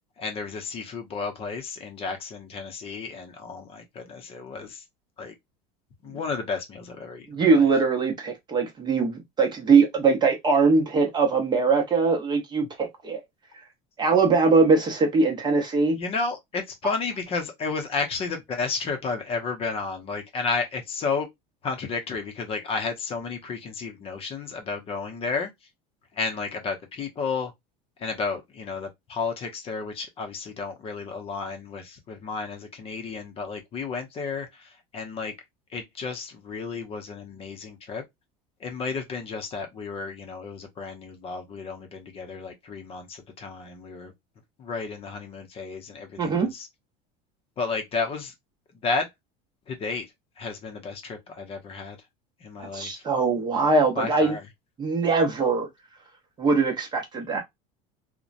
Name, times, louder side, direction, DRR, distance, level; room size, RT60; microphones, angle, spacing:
voice 1, 0.2-4.8 5.2-5.3 6.0-7.7 16.0-21.3 21.6-25.5 26.1-27.5 28.0-35.3 35.7-38.0 38.6-44.1 44.6-46.7 47.6-48.3 48.8-49.1 49.7-50.1 50.4-52.0 52.4-53.0 53.9-54.4, left 4 dB, 30° left, 0.7 m, -32 dB
voice 2, 7.3-13.2 14.0-16.0 46.2-46.5 52.7-54.3 54.8-55.7 56.4-57.4, right 4 dB, 25° right, 0.8 m, -21 dB
2.8 x 2.2 x 2.4 m
supercardioid pair, 135°, 18 cm